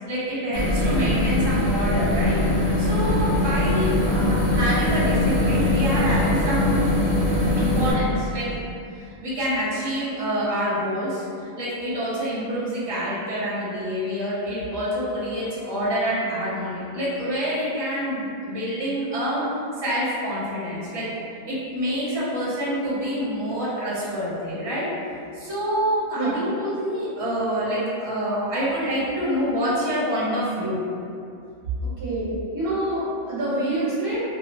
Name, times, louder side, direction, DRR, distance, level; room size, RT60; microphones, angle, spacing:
voice 1, 0.1-2.4 2.8-6.8 7.6-8.5 9.2-19.4 19.8-21.1 21.5-24.9 25.3-30.8, equal, 25° right, -9 dB, 0.7 m, -27 dB
sound 1, 0.5-7.9, left 1 dB, 45° left, 0.8 m, -21 dB
voice 2, 32.0-34.3, right 1 dB, 60° right, -9 dB, 0.7 m, -26 dB
2.9 x 2.3 x 2.6 m, 2.5 s
omnidirectional pair, 1.1 m